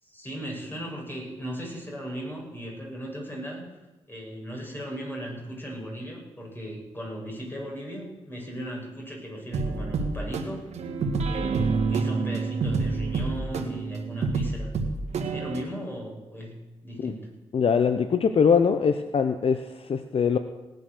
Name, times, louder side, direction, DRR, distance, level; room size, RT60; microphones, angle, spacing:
voice 1, 0.0-3.6 4.1-10.7 11.2-14.7 15.3-17.3, equal, 20° left, -1 dB, 7.1 m, -37 dB
sound 1, 9.5-15.6, right 4 dB, 80° right, 1.9 m, -28 dB
voice 2, 17.5-20.4, left 6 dB, 55° left, 9 dB, 0.8 m, -22 dB
18.0 x 9.3 x 6.6 m, 1.1 s
cardioid pair, 55°, 11 cm